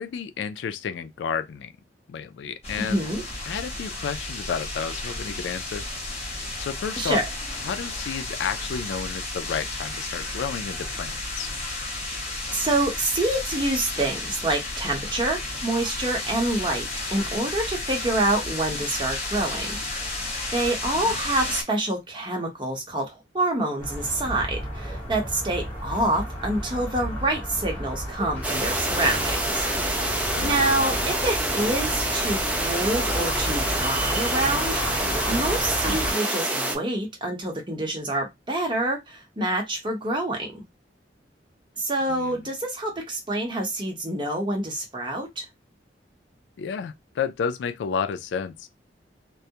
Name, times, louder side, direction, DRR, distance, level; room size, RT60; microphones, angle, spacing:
voice 1, 0.0-1.7 2.1-3.0 3.5-5.9 6.6-7.2 7.5-11.5 20.9-21.2 30.3-31.1 42.1-42.5 46.6-48.7, left 6 dB, 80° left, 0.3 m, -31 dB
sound 1, 2.6-21.6, left 2 dB, 35° left, 0.9 m, -32 dB
voice 2, 2.8-3.2 7.0-7.2 12.5-19.8 20.5-29.6 30.4-34.8 35.3-40.6 41.8-45.4, right 1 dB, 30° right, 0.8 m, -27 dB
sound 2, 23.8-36.1, equal, 10° left, 0.9 m, -32 dB
sound 3, 28.4-36.8, right 1 dB, 10° right, 0.4 m, -27 dB
2.3 x 2.0 x 2.7 m
head